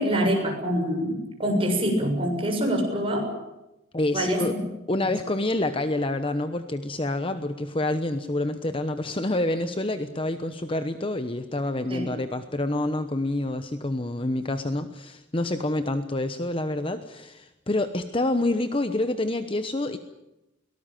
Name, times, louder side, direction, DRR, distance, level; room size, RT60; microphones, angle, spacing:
voice 1, 0.0-3.3 4.1-4.6 5.0-5.1 11.9-12.1, equal, 25° right, 1 dB, 7.0 m, -25 dB
voice 2, 3.9-4.5 4.9-20.0, left 2 dB, 25° left, 9 dB, 1.0 m, -27 dB
23.0 x 19.0 x 9.1 m, 0.93 s
head